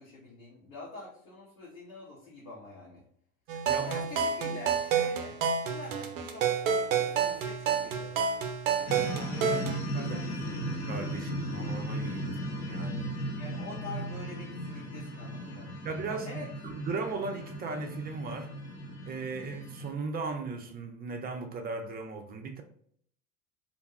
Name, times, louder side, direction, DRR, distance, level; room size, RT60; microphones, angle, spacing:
voice 1, 0.0-3.0 3.7-5.4 5.6-8.1 8.8-10.6 13.4-15.7 16.2-16.5, left 2 dB, 75° left, 1.1 m, -45 dB
sound 1, 3.5-9.8, right 7 dB, 75° right, 0.6 m, -29 dB
sound 2, 8.9-19.9, equal, 40° left, 0.8 m, -36 dB
voice 2, 10.7-13.1 15.8-18.5 19.1-22.6, right 4 dB, 25° right, 0.5 m, -37 dB
2.6 x 2.2 x 3.0 m
hypercardioid pair, 75°, 40 cm